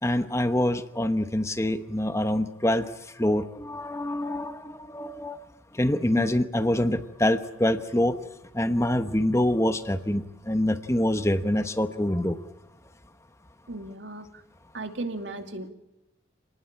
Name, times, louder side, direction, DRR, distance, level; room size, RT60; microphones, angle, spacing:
voice 1, 0.0-2.9 3.2-5.4 5.7-8.1 8.5-12.4, left 1 dB, 15° left, 9 dB, 1.0 m, -25 dB
voice 2, 13.7-14.3 14.7-15.7, right 2 dB, 80° right, 6 dB, 2.5 m, -35 dB
27.0 x 19.0 x 8.8 m, 0.92 s
head